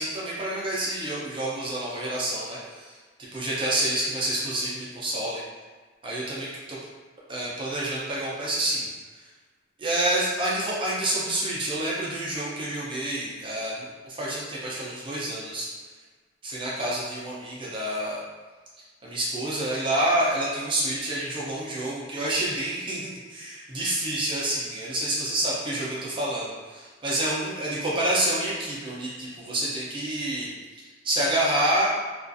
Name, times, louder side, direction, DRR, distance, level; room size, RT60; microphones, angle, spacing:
voice 1, 0.0-2.9 3.3-5.4 6.0-6.8 7.3-8.9 9.8-15.7 16.4-18.2 19.0-30.5 31.0-31.9, right 1 dB, 25° right, -6 dB, 0.5 m, -28 dB
2.4 x 2.3 x 2.5 m, 1.4 s
head